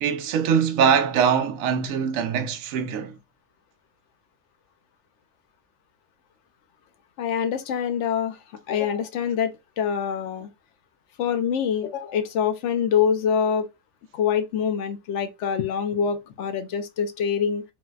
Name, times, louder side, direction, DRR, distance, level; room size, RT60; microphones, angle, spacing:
voice 1, 0.0-3.2, right 7 dB, 65° right, 0.9 m, -22 dB
voice 2, 7.2-8.4 8.7-10.5 11.2-13.7 14.1-17.6, left 7 dB, 65° left, 0.7 m, -25 dB
4.1 x 2.1 x 2.2 m
omnidirectional pair, 1.7 m